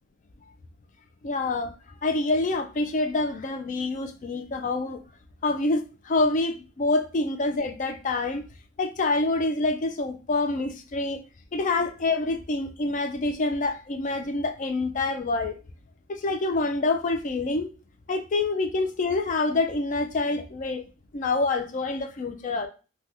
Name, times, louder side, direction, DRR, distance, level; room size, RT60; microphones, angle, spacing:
voice 1, 1.2-1.7 2.0-5.0 5.4-8.4 8.8-11.2 11.5-15.6 16.1-17.7 18.1-20.8 21.1-22.7, left 2 dB, 40° left, 0.4 m, -26 dB
2.7 x 2.2 x 3.4 m
head